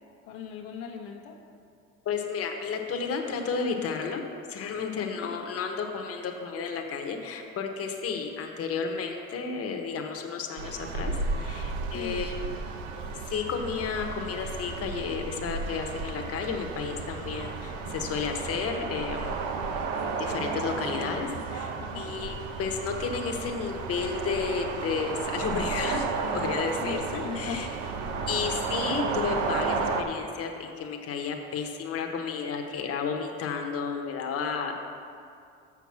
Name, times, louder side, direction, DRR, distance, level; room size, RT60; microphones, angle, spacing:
voice 1, 0.3-1.4 4.8-5.1 11.9-12.2 21.8-22.1 26.8-26.9 27.2-27.7, left 7 dB, 90° left, -1 dB, 1.0 m, -38 dB
voice 2, 2.0-4.2 4.5-12.5 13.2-19.4 20.2-27.7 28.3-34.8, left 5 dB, 50° left, 3 dB, 1.1 m, -32 dB
sound 1, 10.6-30.0, right 4 dB, 80° right, 0.8 m, -33 dB
6.8 x 6.0 x 7.3 m, 2.4 s
supercardioid pair, 85°, 30 cm